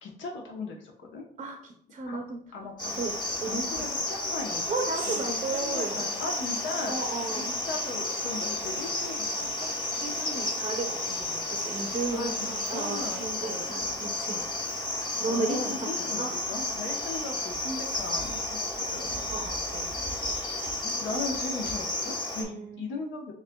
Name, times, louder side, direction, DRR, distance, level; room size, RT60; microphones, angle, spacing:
voice 1, 0.0-1.2 2.1-2.2 2.5-2.9 3.4-4.7 5.1-9.7 12.1-13.7 15.3-19.2 20.8-23.3, left 3 dB, 70° left, 0 dB, 1.0 m, -38 dB
voice 2, 1.4-2.4 2.8-3.6 4.7-6.1 6.9-7.5 10.0-14.4 15.2-16.3 19.3-19.9 22.4-22.9, right 3 dB, 35° right, 2 dB, 0.6 m, -34 dB
Cricket, 2.8-22.4, left 2 dB, 25° left, 0.9 m, -32 dB
sound 1, 4.8-13.2, right 5 dB, 75° right, 0.7 m, -48 dB
6.2 x 2.5 x 2.2 m, 0.63 s
cardioid pair, 90°, 20 cm